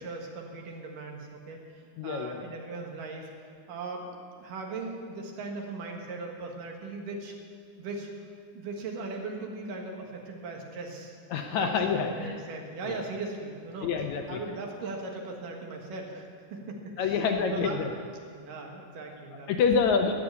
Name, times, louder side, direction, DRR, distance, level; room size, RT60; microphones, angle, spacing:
voice 1, 0.0-1.6 2.0-3.3 3.7-7.3 7.8-8.1 8.5-11.1 11.6-13.9 14.3-17.9 18.4-19.5, right 3 dB, 80° right, 1 dB, 3.2 m, -38 dB
voice 2, 2.0-2.4 11.3-12.4 12.8-13.0 13.8-14.4 17.0-17.9 19.5-20.1, left 6 dB, 70° left, 4 dB, 1.9 m, -27 dB
12.5 x 8.5 x 9.6 m, 2.1 s
omnidirectional pair, 3.8 m